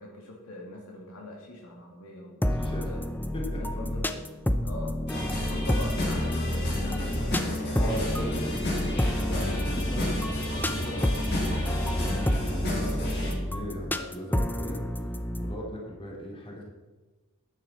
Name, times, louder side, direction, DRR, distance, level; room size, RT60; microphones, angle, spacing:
voice 1, 0.0-3.0 3.5-4.2 4.6-5.0 5.4-8.0 8.6-9.0, left 2 dB, 70° left, -1 dB, 2.7 m, -42 dB
sound 1, 2.4-15.5, left 1 dB, 10° left, 0.6 m, -30 dB
voice 2, 2.5-2.9 3.3-3.6 7.7-8.7 9.2-14.8 15.4-16.6, equal, 25° left, -2 dB, 3.2 m, -38 dB
sound 2, 5.1-13.3, left 1 dB, 50° left, 3.9 m, -31 dB
13.0 x 9.8 x 4.3 m, 1.2 s
head